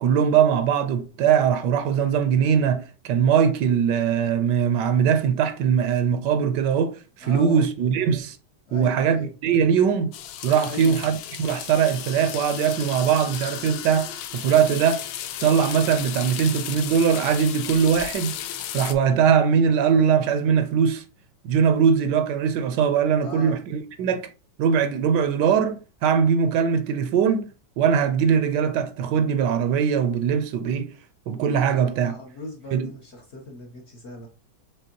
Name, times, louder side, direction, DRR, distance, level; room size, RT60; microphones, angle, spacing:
voice 1, 0.0-8.4 8.7-10.1 10.4-15.0 15.4-18.3 18.7-21.0 21.4-24.3 24.6-27.5 27.8-30.9 31.3-32.1 32.7-32.9, right 7 dB, 75° right, 1.2 m, -21 dB
voice 2, 7.2-7.6 8.7-9.3 10.7-11.0 23.2-23.6 31.7-34.3, left 2 dB, 50° left, 0.9 m, -38 dB
sound 1, 10.1-18.9, left 11 dB, 85° left, 1.2 m, -34 dB
5.2 x 3.6 x 2.8 m
omnidirectional pair, 1.9 m